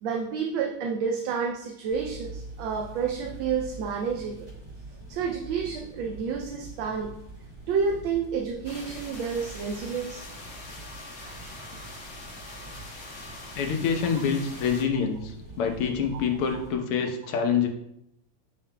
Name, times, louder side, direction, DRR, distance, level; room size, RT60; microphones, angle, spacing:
voice 1, 0.0-4.5 5.1-7.1 7.7-10.2 11.2-12.0 16.1-16.2, right 6 dB, 75° right, 2 dB, 1.3 m, -30 dB
sound 1, 1.9-16.7, right 3 dB, 15° right, 2.7 m, -45 dB
sound 2, 8.6-14.8, left 2 dB, 40° left, 1.1 m, -43 dB
voice 2, 13.6-17.7, left 6 dB, 90° left, 4 dB, 1.8 m, -26 dB
9.5 x 5.7 x 2.2 m, 0.78 s
omnidirectional pair, 2.4 m